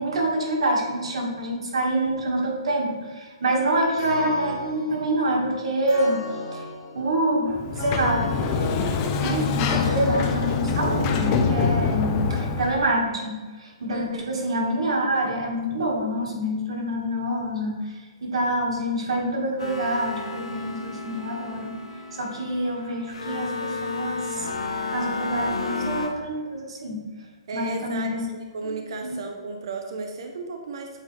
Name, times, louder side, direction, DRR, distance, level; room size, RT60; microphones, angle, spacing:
voice 1, 0.0-6.2 6.5-6.7 6.9-8.8 9.2-21.7 22.1-27.0 27.5-28.3 28.6-28.7 29.0-29.2, right 1 dB, 75° right, 0 dB, 1.8 m, -26 dB
sound 1, 4.0-11.6, left 2 dB, 35° left, 1.3 m, -38 dB
Sliding door, 7.5-12.9, left 5 dB, 20° left, 0.3 m, -24 dB
voice 2, 13.9-14.3 27.5-30.9, right 4 dB, 50° right, 4 dB, 0.6 m, -34 dB
sound 2, 19.6-26.1, left 4 dB, 85° left, 1.0 m, -32 dB
8.3 x 3.6 x 3.3 m, 1.4 s
hypercardioid pair, 170°, 3 cm